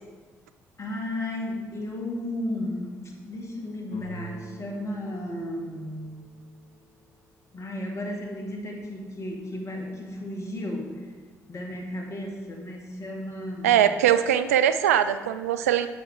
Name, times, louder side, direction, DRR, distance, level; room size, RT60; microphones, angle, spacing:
voice 1, 0.8-6.1 7.5-10.9 11.5-14.0, left 1 dB, 35° left, 1 dB, 1.9 m, -34 dB
sound 1, 3.9-7.5, equal, 60° left, 1.5 m, -45 dB
voice 2, 13.6-15.9, right 10 dB, 75° right, 11 dB, 0.4 m, -21 dB
9.0 x 6.9 x 4.9 m, 1.4 s
figure-of-eight pair, 45°, 8 cm